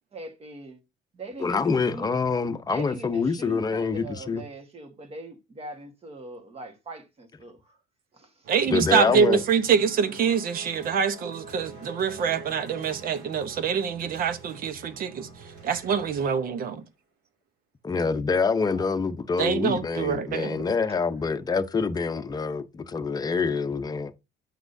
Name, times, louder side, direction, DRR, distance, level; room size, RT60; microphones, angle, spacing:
voice 1, 0.1-0.8 1.1-2.1 2.7-7.8 8.1-8.4 18.7-19.0 20.9-21.0, right 2 dB, 35° right, 1.6 m, -42 dB
voice 2, 1.4-4.4 8.7-9.4 17.8-24.1, left 4 dB, 25° left, 0.7 m, -26 dB
sound 1, 8.4-16.8, right 4 dB, 85° right, 2.4 m, -45 dB
voice 3, 8.5-15.3 15.6-16.8 19.4-20.7, right 7 dB, 60° right, 0.9 m, -25 dB
8.2 x 6.0 x 2.7 m
cardioid pair, 110°, 17 cm